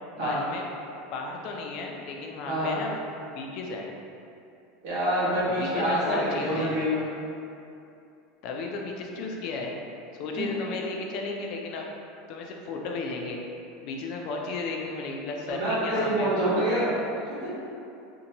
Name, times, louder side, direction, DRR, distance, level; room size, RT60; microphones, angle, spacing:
voice 1, 0.2-0.6 1.1-3.0 3.3-3.9 5.5-6.8 8.4-9.7 10.2-11.9 12.3-13.4 13.8-16.3, left 3 dB, 45° left, 0 dB, 0.3 m, -34 dB
voice 2, 2.5-2.8 4.8-7.0 10.3-10.4 15.5-17.0 17.3-17.5, equal, 65° right, -9 dB, 1.0 m, -26 dB
2.6 x 2.1 x 2.8 m, 2.7 s
supercardioid pair, 160°, 0 cm